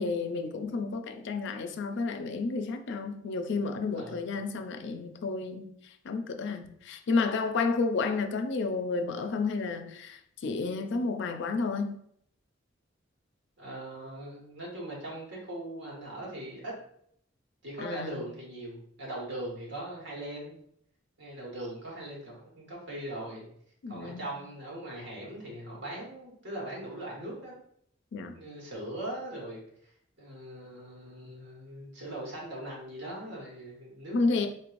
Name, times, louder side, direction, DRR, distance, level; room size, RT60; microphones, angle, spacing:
voice 1, 0.0-5.7 6.0-12.0 17.8-18.2 23.8-24.3 28.1-28.3 34.1-34.5, left 4 dB, 65° left, 0.4 m, -31 dB
voice 2, 13.6-16.7 17.6-20.5 21.2-23.5 23.9-27.5 28.3-29.9 30.2-34.2, right 1 dB, 65° right, 1.5 m, -40 dB
4.4 x 3.0 x 2.5 m
head